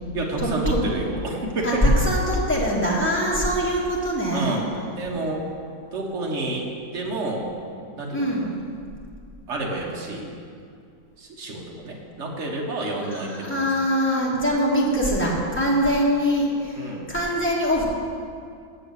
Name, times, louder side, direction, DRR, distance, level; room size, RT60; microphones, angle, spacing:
voice 1, 0.1-1.9 4.3-4.7 5.0-5.5 5.9-7.5 8.0-8.5 9.5-10.3 11.2-13.7 16.7-17.1, right 2 dB, 40° right, -1 dB, 1.4 m, -29 dB
voice 2, 1.6-4.5 8.1-8.5 13.1-17.8, equal, 5° left, -5 dB, 1.4 m, -23 dB
8.2 x 7.2 x 6.5 m, 2.3 s
omnidirectional pair, 2.1 m